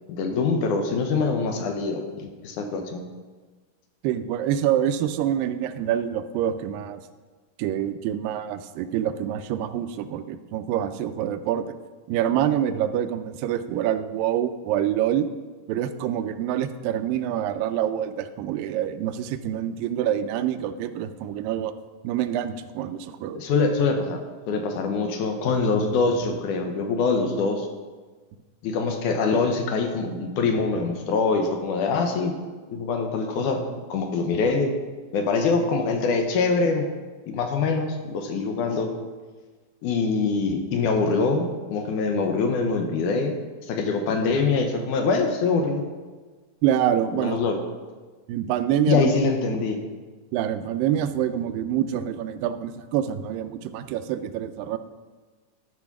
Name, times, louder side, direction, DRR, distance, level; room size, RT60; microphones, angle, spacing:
voice 1, 0.1-3.0 23.4-24.2 24.5-27.7 28.6-32.3 32.7-33.6 33.9-34.7 35.1-36.9 37.3-38.9 39.8-43.4 43.6-45.9 47.1-47.6 48.9-49.8, left 4 dB, 75° left, 4 dB, 2.2 m, -24 dB
voice 2, 4.0-7.0 7.6-11.8 12.1-15.3 15.7-21.7 22.0-23.4 46.6-47.4 48.3-49.1 50.3-54.8, right 10 dB, 90° right, 10 dB, 2.3 m, -26 dB
12.5 x 4.8 x 5.9 m, 1.4 s
omnidirectional pair, 3.9 m